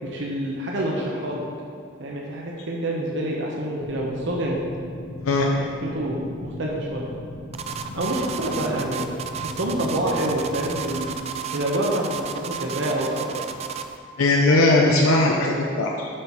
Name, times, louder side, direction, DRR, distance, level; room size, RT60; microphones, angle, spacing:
voice 1, 0.0-1.4 2.0-4.6 5.5-7.1 7.9-9.1 9.4-11.1 11.5-13.4, right 1 dB, 60° right, -2 dB, 0.9 m, -27 dB
sound 1, 3.8-11.2, left 2 dB, 50° left, 0.8 m, -38 dB
sound 2, 7.5-14.0, right 7 dB, 30° right, 0.3 m, -33 dB
voice 2, 14.2-16.1, left 2 dB, 90° left, -1 dB, 0.7 m, -19 dB
7.7 x 5.7 x 4.5 m, 2.2 s
head